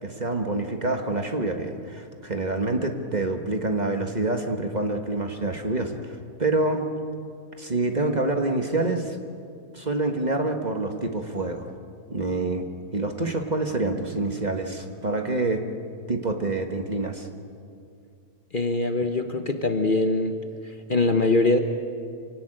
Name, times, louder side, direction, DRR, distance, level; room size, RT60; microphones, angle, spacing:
voice 1, 0.0-6.9 7.6-9.2 9.7-11.7 12.1-12.6 12.9-15.6 16.1-17.3, right 2 dB, 30° right, 4 dB, 1.5 m, -27 dB
voice 2, 18.5-20.4 20.6-21.6, left 2 dB, 40° left, 6 dB, 1.2 m, -23 dB
25.5 x 17.5 x 8.9 m, 2.4 s
omnidirectional pair, 1.5 m